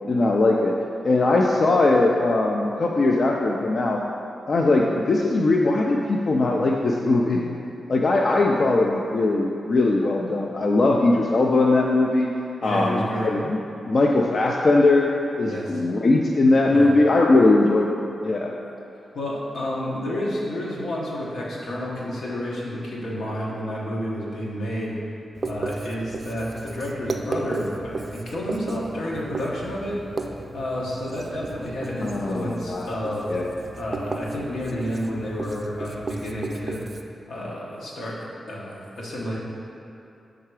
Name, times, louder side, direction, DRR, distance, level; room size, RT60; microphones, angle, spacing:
voice 1, 0.1-0.7 1.0-4.0 4.5-7.5 7.9-12.3 12.6-13.6 13.9-15.1 15.4-18.5 32.0-32.9 33.3-33.5, left 2 dB, 50° left, -1 dB, 0.4 m, -20 dB
voice 2, 12.6-13.3 15.4-15.9 16.7-16.9 19.1-24.9 25.4-30.0 30.5-33.3 33.7-36.9 37.3-38.2 38.5-39.4, equal, 85° left, -5 dB, 1.1 m, -30 dB
Writing, 25.3-37.0, right 3 dB, 40° right, 0.3 m, -35 dB
5.6 x 3.7 x 4.7 m, 2.8 s
wide cardioid pair, 100°, 0 cm